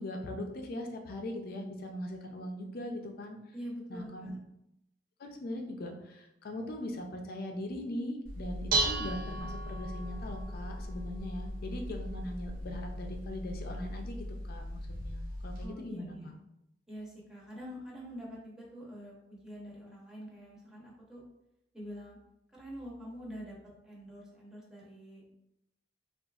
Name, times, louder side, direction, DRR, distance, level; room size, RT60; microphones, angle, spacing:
voice 1, 0.0-3.5 3.9-4.3 5.2-16.3, left 1 dB, 55° left, 3 dB, 0.5 m, -40 dB
voice 2, 3.5-4.4 15.6-16.3 16.9-21.2 21.7-22.2 22.5-23.6 23.8-25.3, equal, 5° right, -5 dB, 0.8 m, -45 dB
Dishes pots and pans, 8.3-15.7, right 1 dB, 50° right, 0.5 m, -36 dB
3.8 x 2.4 x 2.3 m, 0.84 s
head